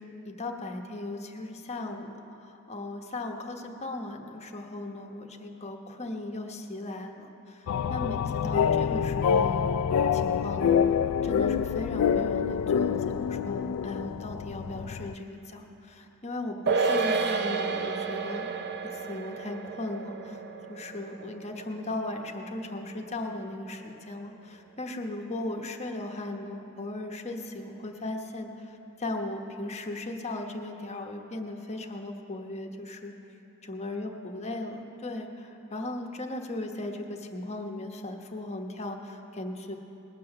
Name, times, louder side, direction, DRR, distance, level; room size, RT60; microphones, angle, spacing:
voice 1, 0.0-2.1 2.4-9.7 10.1-10.9 11.2-18.5 18.9-20.4 20.7-33.1 33.6-39.8, left 2 dB, 30° left, 3 dB, 1.0 m, -37 dB
sound 1, 7.7-15.1, left 7 dB, 85° left, 0.3 m, -26 dB
sound 2, 16.7-23.3 23.6-23.7, right 4 dB, 50° right, 0.6 m, -31 dB
20.0 x 7.7 x 6.7 m, 2.9 s
head